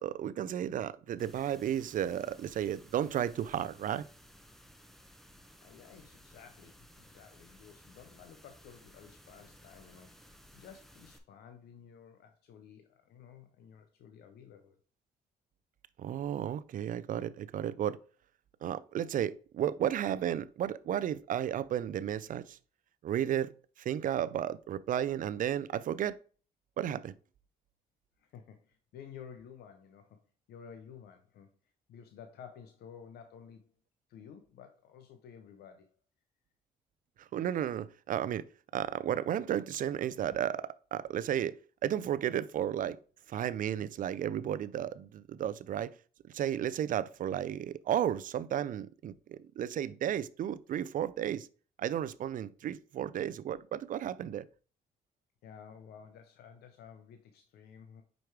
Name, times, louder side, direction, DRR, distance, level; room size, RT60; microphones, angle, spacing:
voice 1, 0.0-4.0 16.0-18.0 18.6-22.6 23.0-23.5 23.8-26.2 26.8-27.1 37.2-38.4 38.7-41.5 41.8-43.0 43.3-45.9 46.3-51.5 51.8-54.4, right 10 dB, 55° right, 0.4 m, -33 dB
sound 1, 1.2-11.2, equal, ahead, 0.9 m, -58 dB
voice 2, 5.6-14.8 28.2-30.2 30.5-31.5 31.9-33.7 34.1-36.0 55.4-58.0, left 7 dB, 80° left, 0.8 m, -53 dB
5.2 x 4.6 x 4.6 m
cardioid pair, 85°, 16 cm